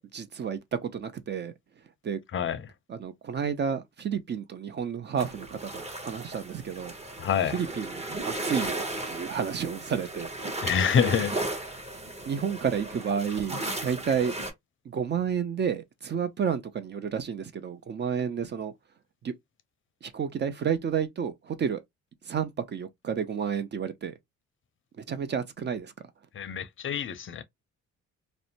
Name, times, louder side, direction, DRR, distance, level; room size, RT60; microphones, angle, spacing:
voice 1, 0.0-1.5 2.0-2.2 2.9-6.9 7.4-10.3 12.3-14.3 14.9-18.7 19.2-19.3 20.0-21.8 22.3-24.2 25.0-25.9, right 7 dB, 35° right, 0.4 m, -31 dB
sound 1, 5.2-14.5, right 2 dB, 20° right, 0.9 m, -35 dB
voice 2, 7.2-7.6 10.6-11.3 26.4-27.4, left 7 dB, 40° left, 0.5 m, -26 dB
2.5 x 2.1 x 2.7 m
cardioid pair, 90°, 30 cm